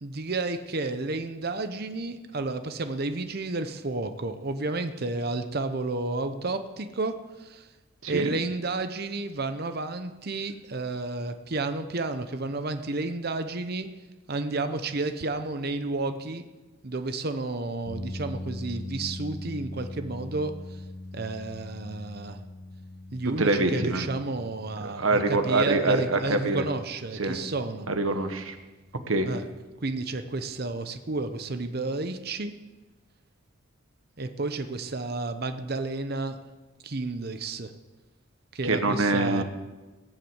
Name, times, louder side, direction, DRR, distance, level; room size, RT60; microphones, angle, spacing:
voice 1, 0.0-7.1 7.4-7.7 8.1-13.9 14.3-16.4 16.8-20.5 21.1-22.4 23.1-27.9 29.3-29.4 29.8-32.5 34.2-36.4 36.8-37.7 38.5-39.4, right 3 dB, 50° right, 9 dB, 0.8 m, -31 dB
voice 2, 8.0-8.3 23.4-24.1 24.8-26.7 27.1-27.4 27.9-28.5 29.1-29.3 38.6-39.4, right 2 dB, 80° right, 7 dB, 1.4 m, -25 dB
sound 1, 17.8-32.1, left 1 dB, 70° left, 1.5 m, -42 dB
18.0 x 7.5 x 8.0 m, 1.2 s
head